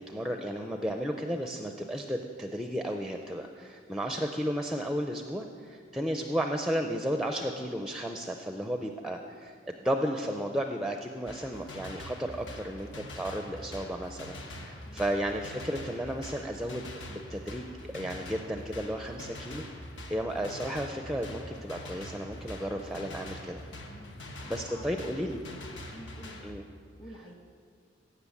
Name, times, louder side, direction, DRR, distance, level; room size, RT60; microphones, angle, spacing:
voice 1, 0.0-17.7 17.9-19.6 20.1-23.6 24.2-25.4 26.4-26.6, equal, ahead, 4 dB, 0.5 m, -33 dB
sound 1, 11.3-26.5, left 1 dB, 80° left, 1.4 m, -44 dB
voice 2, 14.6-15.1 23.9-24.2 24.5-25.4 25.9-26.4 27.0-27.3, equal, 30° left, 2 dB, 1.7 m, -49 dB
15.5 x 5.9 x 8.5 m, 2.1 s
head